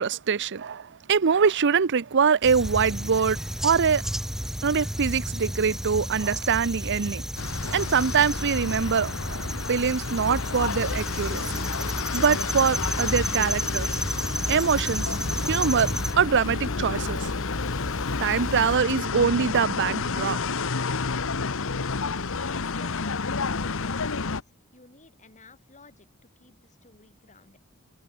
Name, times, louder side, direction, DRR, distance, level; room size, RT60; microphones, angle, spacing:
voice 1, 0.0-4.1 4.6-7.2 7.6-11.6 12.1-14.0 14.5-15.1 15.5-15.9 16.2-17.3 18.2-20.4, right 6 dB, 55° right, 0.6 m, -24 dB
sound 1, 2.4-16.1, equal, ahead, 1.5 m, -32 dB
sound 2, 7.4-24.4, left 4 dB, 65° left, 1.2 m, -30 dB
sound 3, 10.2-18.8, left 1 dB, 15° left, 0.6 m, -36 dB
voice 2, 22.4-27.6, left 3 dB, 35° left, 4.8 m, -53 dB
open air
head